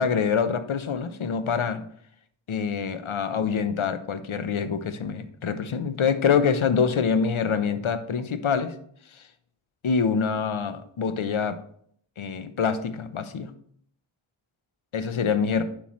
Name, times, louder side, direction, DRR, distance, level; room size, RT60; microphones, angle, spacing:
voice 1, 0.0-1.9 2.5-8.7 9.8-11.6 12.2-13.5 14.9-15.6, left 6 dB, 70° left, 11 dB, 0.8 m, -25 dB
8.9 x 7.2 x 3.1 m, 0.64 s
cardioid pair, 40°, 50 cm